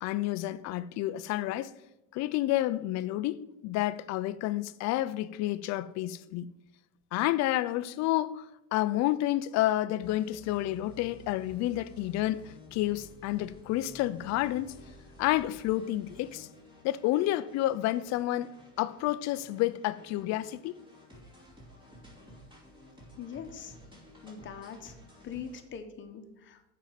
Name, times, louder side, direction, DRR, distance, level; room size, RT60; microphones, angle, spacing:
voice 1, 0.0-1.7 2.1-6.5 7.1-8.5 8.7-14.8 15.2-16.5 16.8-18.5 18.8-20.8, left 15 dB, 55° left, 0.6 m, -30 dB
sound 1, 10.0-25.6, equal, 15° right, 3.0 m, -53 dB
voice 2, 23.2-23.7 24.2-24.9 25.2-26.7, left 7 dB, 35° left, 1.2 m, -42 dB
7.2 x 5.6 x 7.5 m
supercardioid pair, 120°, 33 cm